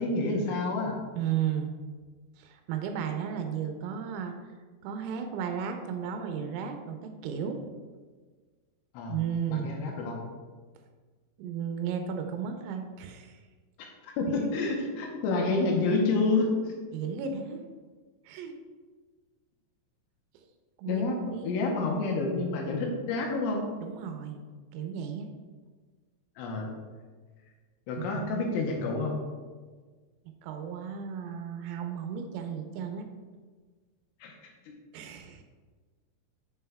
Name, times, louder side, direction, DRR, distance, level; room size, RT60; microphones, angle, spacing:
voice 1, 0.0-1.0 8.9-9.1 9.5-10.2 14.0-16.7 20.9-21.2 21.4-23.7 26.4-26.7 27.9-29.2 34.2-34.3 34.7-34.8, left 3 dB, 80° left, 0 dB, 3.1 m, -28 dB
voice 2, 1.2-1.7 2.4-4.3 4.8-7.6 9.1-9.7 11.4-13.4 13.8-13.9 16.9-17.6 18.3-18.5 20.8-21.6 23.8-24.4 24.7-25.3 28.0-28.5 30.4-33.1 34.9-35.4, right 8 dB, 90° right, 5 dB, 3.1 m, -34 dB
7.6 x 5.6 x 2.2 m, 1.4 s
omnidirectional pair, 5.7 m